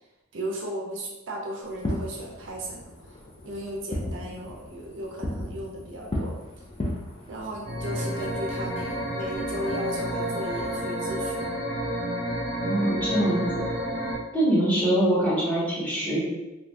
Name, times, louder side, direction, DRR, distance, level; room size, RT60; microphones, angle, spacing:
voice 1, 0.3-2.9 3.4-6.4 7.3-11.5 14.6-14.8, right 1 dB, 60° right, -1 dB, 0.5 m, -35 dB
Fireworks, 1.7-10.9, left 1 dB, 25° left, 0.4 m, -37 dB
sound 1, 7.6-14.1, equal, 65° left, 1.3 m, -30 dB
voice 2, 12.6-13.4 14.3-16.2, right 1 dB, 5° left, -9 dB, 1.0 m, -23 dB
2.6 x 2.5 x 3.3 m, 1.0 s
head